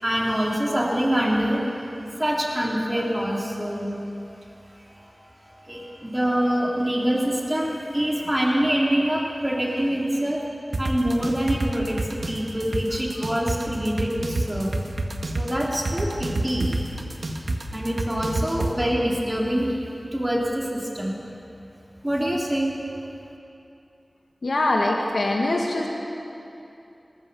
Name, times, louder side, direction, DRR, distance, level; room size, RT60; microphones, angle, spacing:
voice 1, 0.0-1.7 2.2-4.0 5.0-5.1 5.6-10.4 10.8-14.7 15.3-16.7 17.7-19.7 20.1-21.1 22.0-22.7, equal, 20° right, -3 dB, 3.3 m, -25 dB
sound 1, 10.7-18.7, right 2 dB, 80° right, 1.8 m, -27 dB
voice 2, 24.4-25.9, left 2 dB, 85° left, 0 dB, 1.9 m, -23 dB
26.0 x 14.5 x 7.0 m, 2.7 s
wide cardioid pair, 60°, 0 cm